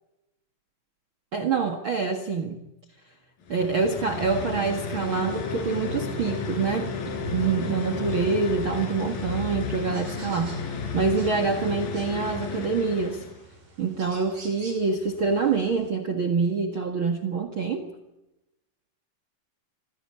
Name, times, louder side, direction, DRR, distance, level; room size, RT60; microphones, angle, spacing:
voice 1, 1.3-2.6 3.5-10.5 10.9-13.2 13.8-17.8, right 5 dB, 45° right, 4 dB, 2.1 m, -26 dB
sound 1, 3.4-13.4, left 4 dB, 90° left, 5.2 m, -33 dB
sound 2, 5.3-9.2, left 8 dB, 50° left, 4.6 m, -36 dB
sound 3, 7.8-15.9, right 2 dB, 75° right, 8.0 m, -50 dB
26.0 x 16.5 x 9.9 m, 0.92 s
omnidirectional pair, 4.0 m